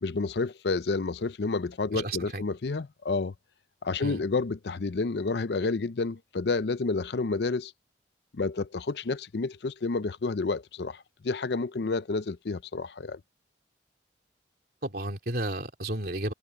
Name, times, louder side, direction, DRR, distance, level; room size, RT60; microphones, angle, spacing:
voice 1, 0.0-3.3 3.8-7.7 8.3-13.2, left 3 dB, 70° left, 0.6 m, -30 dB
voice 2, 1.9-2.4 4.0-4.2 14.8-16.3, right 1 dB, 60° right, 3.4 m, -32 dB
head